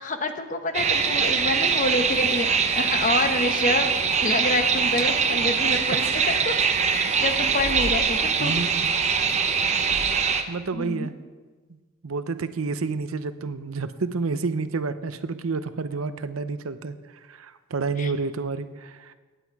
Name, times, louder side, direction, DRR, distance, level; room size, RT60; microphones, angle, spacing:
voice 1, 0.0-3.9 4.2-6.6 6.9-8.5 9.6-9.7 10.8-11.1 18.0-18.1, left 2 dB, 35° left, 7 dB, 0.9 m, -27 dB
sound 1, 0.7-10.4, right 6 dB, 35° right, 0.8 m, -23 dB
voice 2, 8.4-8.9 10.5-11.1 12.0-17.0 17.3-19.1, right 4 dB, 85° right, 12 dB, 0.7 m, -29 dB
16.0 x 9.4 x 4.7 m, 1.4 s
head